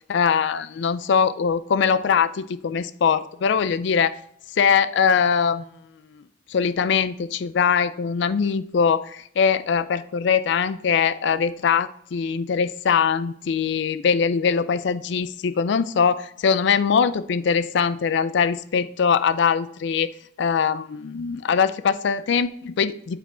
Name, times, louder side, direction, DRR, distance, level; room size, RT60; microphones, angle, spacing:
voice 1, 0.1-4.2 4.5-5.6 6.1-6.2 6.5-20.1 20.4-23.2, left 6 dB, 65° left, 13 dB, 0.4 m, -22 dB
8.2 x 4.3 x 3.5 m, 0.67 s
head